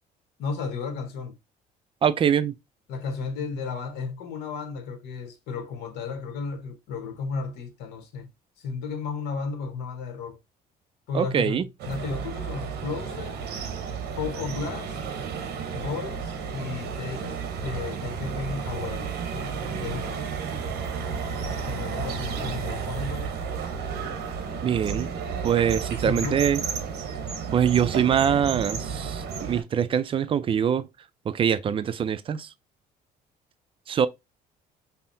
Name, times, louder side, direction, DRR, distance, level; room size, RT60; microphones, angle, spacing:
voice 1, 0.4-1.3 2.9-8.3 8.6-10.4 11.1-13.5 14.1-15.0 15.7-20.3 21.6-23.3 26.0-26.4, left 5 dB, 85° left, 1.0 m, -34 dB
voice 2, 2.0-2.5 11.1-11.6 24.6-25.1 25.4-26.6 27.5-30.9 31.3-32.5 33.9-34.1, right 8 dB, 30° right, 0.3 m, -23 dB
sound 1, 11.8-29.6, right 6 dB, 80° right, 0.9 m, -32 dB
5.5 x 2.1 x 2.6 m
cardioid pair, 110°, 17 cm